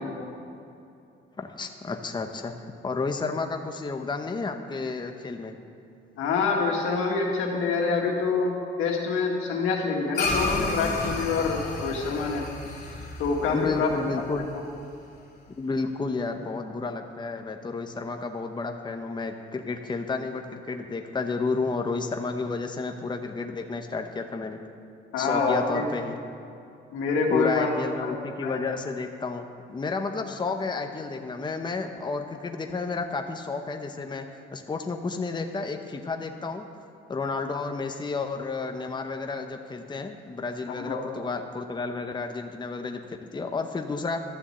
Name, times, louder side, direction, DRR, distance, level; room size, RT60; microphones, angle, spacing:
voice 1, 1.4-2.5 2.8-5.6 13.5-14.4 15.6-24.6 25.2-26.2 27.3-36.7 37.1-44.2, left 4 dB, 20° left, 5 dB, 0.9 m, -31 dB
voice 2, 6.2-12.5 13.2-13.9 25.1-25.8 26.9-27.7 28.0-28.1 28.4-28.6 40.8-41.1, left 4 dB, 90° left, 0 dB, 1.9 m, -26 dB
sound 1, 10.1-14.8, left 3 dB, 55° left, 3.1 m, -31 dB
12.5 x 7.1 x 7.8 m, 2.6 s
cardioid pair, 90°, 20 cm